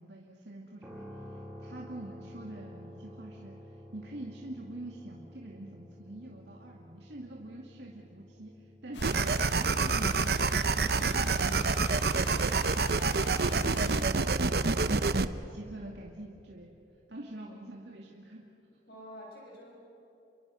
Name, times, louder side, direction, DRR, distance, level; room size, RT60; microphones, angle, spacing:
voice 1, 0.0-11.7 15.5-16.7 17.1-18.5, right 1 dB, 75° right, -1 dB, 2.3 m, -46 dB
sound 1, 0.8-14.8, equal, 5° right, 2.7 m, -52 dB
sound 2, 8.9-14.0, left 3 dB, 85° left, 1.7 m, -44 dB
sound 3, 9.0-15.3, right 4 dB, 60° right, 0.8 m, -27 dB
voice 2, 18.9-19.7, equal, 60° left, -2 dB, 7.7 m, -48 dB
29.5 x 23.5 x 6.3 m, 2.9 s
head